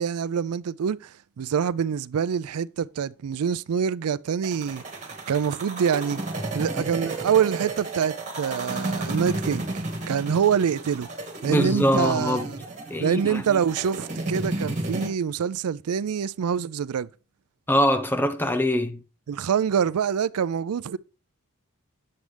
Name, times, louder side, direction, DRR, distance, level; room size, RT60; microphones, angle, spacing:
voice 1, 0.0-4.8 5.3-6.2 6.5-11.1 11.4-12.6 13.0-17.1 19.3-21.0, right 7 dB, 85° right, 0.4 m, -25 dB
sound 1, 4.4-15.1, right 2 dB, 35° right, 2.1 m, -32 dB
voice 2, 11.5-12.4 12.9-13.6 17.7-19.0, equal, 10° left, 0.7 m, -23 dB
8.4 x 7.6 x 3.3 m
head